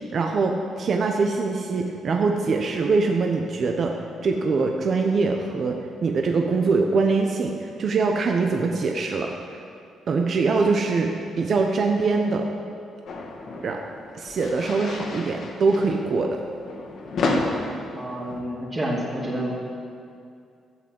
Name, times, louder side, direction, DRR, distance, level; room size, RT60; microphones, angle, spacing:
voice 1, 0.1-3.9 4.2-5.8 6.0-9.3 10.1-11.1 11.4-12.5 13.6-13.8 14.1-16.4, right 4 dB, 50° right, 2 dB, 1.0 m, -23 dB
sound 1, 13.1-18.4, left 2 dB, 65° left, 1.8 m, -31 dB
voice 2, 17.9-19.6, equal, 25° right, -9 dB, 2.9 m, -29 dB
13.0 x 7.9 x 7.7 m, 2.4 s
cardioid pair, 90°, 0 cm